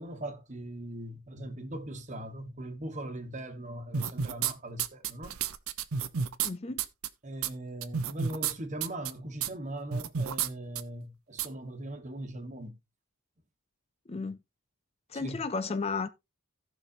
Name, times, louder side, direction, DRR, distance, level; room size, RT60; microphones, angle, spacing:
voice 1, 0.0-5.3 7.2-12.7 15.1-15.4, right 1 dB, 35° right, 1.3 m, -40 dB
sound 1, 3.9-4.5 4.8-6.5 6.8-7.1 7.4-7.5 7.8-8.5 8.8-9.1 9.4-9.5 9.9-10.5 10.8-10.9 11.4-11.5, right 7 dB, 75° right, 0.7 m, -30 dB
voice 2, 6.4-6.8 14.1-14.4 15.1-16.1, left 4 dB, 30° left, 0.4 m, -33 dB
17.0 x 5.9 x 2.7 m
head